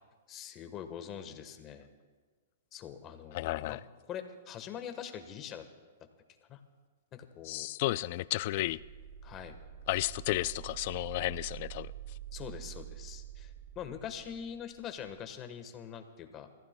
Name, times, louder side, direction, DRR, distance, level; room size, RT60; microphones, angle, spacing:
voice 1, 0.3-1.9 2.7-3.8 4.1-5.6 6.5-6.6 7.1-7.7 9.2-9.6 12.3-16.5, left 8 dB, 25° left, 7 dB, 1.2 m, -43 dB
voice 2, 3.3-3.8 7.4-8.8 9.9-12.2, left 17 dB, 50° left, 17 dB, 0.3 m, -33 dB
sound 1, 8.5-15.2, right 12 dB, 80° right, 1.4 m, -47 dB
28.5 x 15.0 x 2.2 m, 1.4 s
hypercardioid pair, 145°, 0 cm